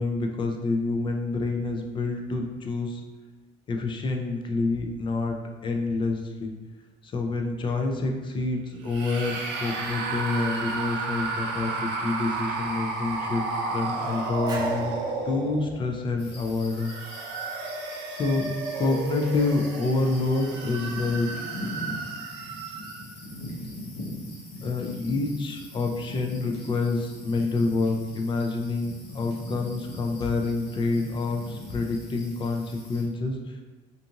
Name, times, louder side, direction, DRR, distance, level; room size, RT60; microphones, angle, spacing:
voice 1, 0.0-3.0 3.7-6.5 7.0-14.9 15.3-16.9 18.1-21.3 24.6-33.4, left 3 dB, 30° left, 3 dB, 0.4 m, -27 dB
sound 1, 8.8-15.9 16.6-23.1, right 3 dB, 80° right, 0.4 m, -32 dB
sound 2, 14.4-17.2, right 2 dB, 25° right, 0.6 m, -44 dB
sound 3, 16.2-33.0, left 1 dB, 90° left, 0.8 m, -41 dB
2.5 x 2.4 x 2.7 m, 1.3 s
cardioid pair, 110°, 17 cm